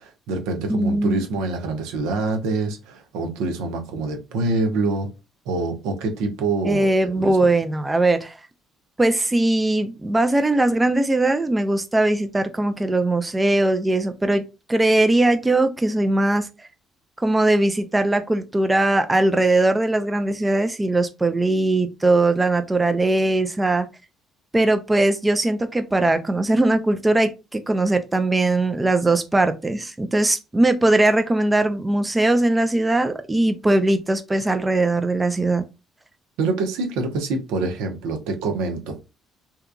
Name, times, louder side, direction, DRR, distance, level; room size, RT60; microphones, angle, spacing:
voice 1, 0.0-5.1 5.5-7.5 36.4-39.0, right 3 dB, 85° right, 0.6 m, -26 dB
voice 2, 0.7-1.2 6.7-8.4 9.0-16.5 17.2-23.9 24.5-35.6, right 2 dB, 15° right, 0.4 m, -20 dB
2.8 x 2.3 x 2.2 m
supercardioid pair, 70°, 0 cm